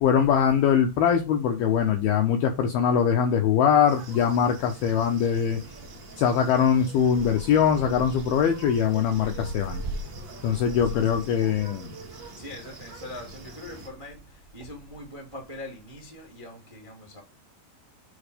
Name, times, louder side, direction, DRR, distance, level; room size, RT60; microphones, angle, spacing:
voice 1, 0.0-5.6 6.2-9.8 10.4-11.9, left 8 dB, 75° left, 2.3 m, -22 dB
sound 1, 3.9-13.9, right 1 dB, 55° right, 1.2 m, -40 dB
voice 2, 10.9-11.4 12.1-17.2, left 1 dB, 15° right, 1.1 m, -42 dB
7.0 x 4.4 x 5.1 m
omnidirectional pair, 5.4 m